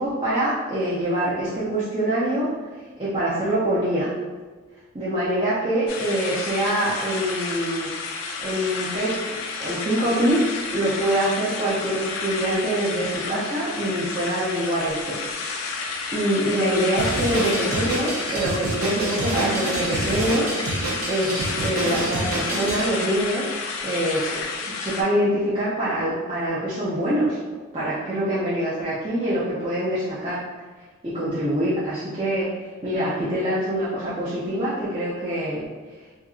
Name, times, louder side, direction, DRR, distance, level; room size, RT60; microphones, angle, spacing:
voice 1, 0.0-2.5 3.0-4.1 4.9-7.9 8.4-9.1 9.6-15.2 16.1-20.5 20.8-23.5 23.8-24.4 24.6-27.4 27.7-30.4 31.0-32.5 32.8-35.6, right 1 dB, 25° right, -10 dB, 0.5 m, -24 dB
sound 1, 5.9-25.0, left 4 dB, 80° left, 0.4 m, -31 dB
Drum kit, 17.0-22.9, right 2 dB, 85° right, 0.6 m, -28 dB
2.8 x 2.5 x 2.4 m, 1.4 s
head